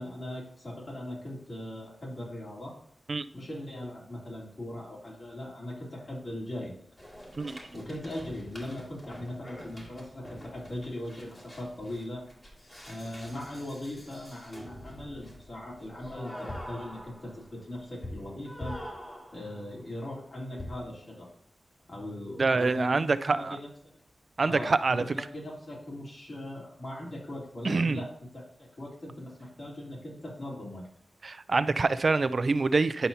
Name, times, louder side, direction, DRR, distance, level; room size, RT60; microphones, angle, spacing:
voice 1, 0.0-2.7 3.3-6.8 7.7-12.2 12.8-18.8 19.3-21.3 21.9-23.7 24.5-30.8, left 1 dB, 50° left, -4 dB, 3.0 m, -39 dB
sound 1, 7.0-19.8 20.6-21.0, left 1 dB, 35° left, 2.3 m, -45 dB
voice 2, 22.4-23.6 24.4-25.0 27.6-28.0 31.2-33.1, right 3 dB, 50° right, 13 dB, 0.3 m, -26 dB
10.0 x 5.5 x 2.7 m, 0.63 s
wide cardioid pair, 75°, 0 cm